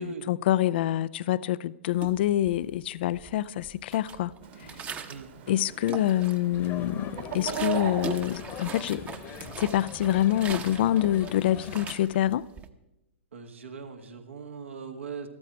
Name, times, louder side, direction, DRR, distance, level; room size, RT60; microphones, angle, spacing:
voice 1, 0.0-4.3 4.6-4.8 5.5-9.2 9.6-12.5, left 13 dB, 55° left, 0.4 m, -26 dB
sound 1, 1.9-2.8 3.1-5.3 5.7-6.6 7.0-12.7, right 6 dB, 20° right, 0.9 m, -41 dB
Chicken rooster, 4.4-9.5, right 7 dB, 55° right, 2.0 m, -38 dB
sound 2, 6.5-12.0, left 8 dB, 30° left, 1.1 m, -42 dB
voice 2, 13.3-15.3, right 4 dB, 75° right, 1.6 m, -39 dB
13.5 x 13.0 x 4.6 m
figure-of-eight pair, 110°, 7 cm